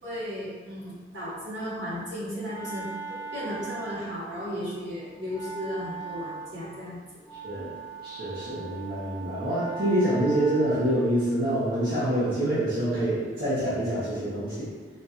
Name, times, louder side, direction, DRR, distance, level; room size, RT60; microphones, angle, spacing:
voice 1, 0.0-7.0, equal, 75° right, -9 dB, 1.3 m, -35 dB
Wind instrument woodwind instrument, 1.9-11.0, right 4 dB, 15° left, 0.8 m, -41 dB
voice 2, 8.0-14.7, right 1 dB, 55° right, -13 dB, 1.0 m, -26 dB
4.2 x 2.4 x 2.4 m, 1.5 s
head